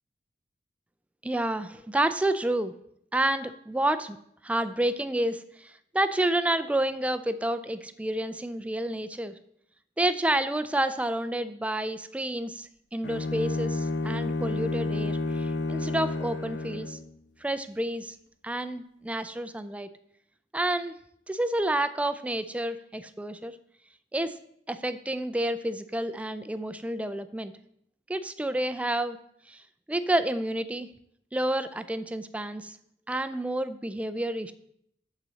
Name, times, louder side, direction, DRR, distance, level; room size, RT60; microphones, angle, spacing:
voice 1, 1.2-2.7 3.1-4.2 4.4-9.4 10.0-17.0 17.4-18.2 18.4-19.9 20.5-21.0 21.3-23.6 24.1-24.4 24.7-27.5 28.1-29.2 29.5-29.6 29.9-30.9 31.3-32.8 33.1-34.5, right 1 dB, 10° right, 11 dB, 0.3 m, -29 dB
Bowed string instrument, 13.0-17.1, left 2 dB, 70° left, 0.6 m, -30 dB
8.3 x 4.1 x 6.9 m, 0.71 s
head